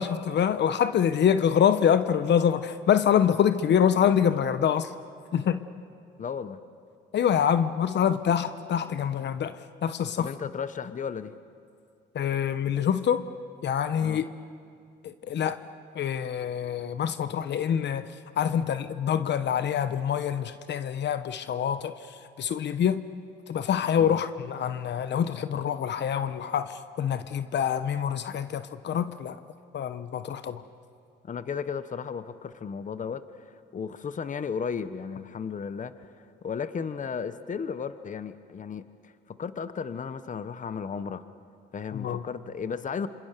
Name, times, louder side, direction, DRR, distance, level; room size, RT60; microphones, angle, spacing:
voice 1, 0.0-4.9 5.3-5.6 7.1-10.3 12.1-13.3 13.6-14.3 15.0-15.6 15.9-23.0 23.5-29.4 29.7-30.6 41.9-42.2, left 8 dB, 60° left, 11 dB, 1.1 m, -26 dB
voice 2, 6.2-6.6 10.2-11.3 14.0-14.2 24.0-24.2 31.2-36.1 36.4-41.2 41.7-43.1, left 6 dB, 40° left, 12 dB, 1.1 m, -34 dB
26.5 x 26.5 x 6.8 m, 2.4 s
cardioid pair, 90°, 20 cm